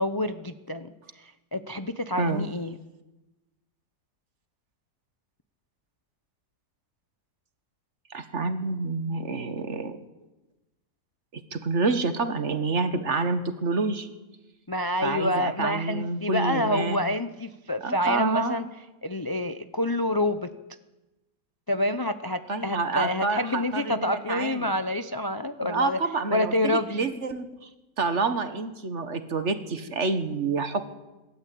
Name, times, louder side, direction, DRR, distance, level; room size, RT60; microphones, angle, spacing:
voice 1, 0.0-2.8 14.7-18.7 19.0-20.5 21.7-26.0 26.3-27.1, left 1 dB, 35° left, 10 dB, 0.3 m, -28 dB
voice 2, 8.1-10.0 11.3-14.1 15.0-17.0 17.8-18.6 22.5-24.6 25.6-27.7 28.0-30.8, right 4 dB, 45° right, 10 dB, 1.6 m, -28 dB
25.5 x 13.0 x 8.6 m, 1.1 s
omnidirectional pair, 1.7 m